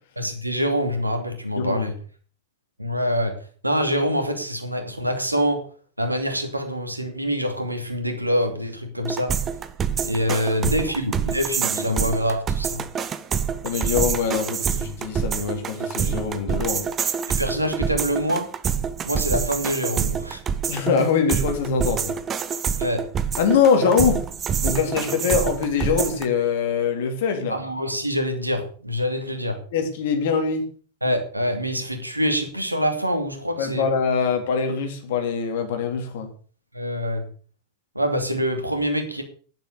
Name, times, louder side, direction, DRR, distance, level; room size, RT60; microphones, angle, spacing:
voice 1, 0.2-1.9 2.8-3.3 3.6-5.6 6.0-9.3 10.0-12.8 17.4-18.5 19.0-20.4 22.8-23.0 27.5-29.6 31.0-33.9 36.7-37.2 37.9-39.2, equal, 85° right, 6 dB, 2.7 m, -25 dB
voice 2, 1.6-1.9 10.3-10.4 11.7-12.0 13.6-16.8 20.7-22.2 23.4-24.2 24.6-27.5 29.7-30.6 33.6-36.3, left 6 dB, 55° left, 6 dB, 3.2 m, -23 dB
sound 1, 9.0-26.3, right 7 dB, 25° right, 1.2 m, -26 dB
10.5 x 10.5 x 6.6 m, 0.42 s
figure-of-eight pair, 90°, 0 cm